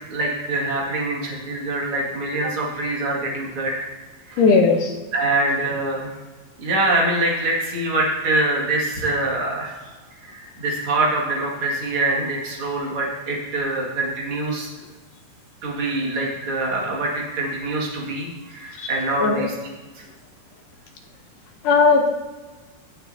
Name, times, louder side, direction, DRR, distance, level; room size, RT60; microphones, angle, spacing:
voice 1, 0.0-3.9 4.3-4.4 5.1-6.1 6.6-9.7 10.2-14.7 15.6-19.5, right 2 dB, 40° right, -3 dB, 2.3 m, -24 dB
voice 2, 4.4-5.0 18.8-18.9 19.2-19.5 21.6-22.1, left 4 dB, 75° left, 3 dB, 1.9 m, -17 dB
17.0 x 6.1 x 2.7 m, 1.3 s
omnidirectional pair, 4.5 m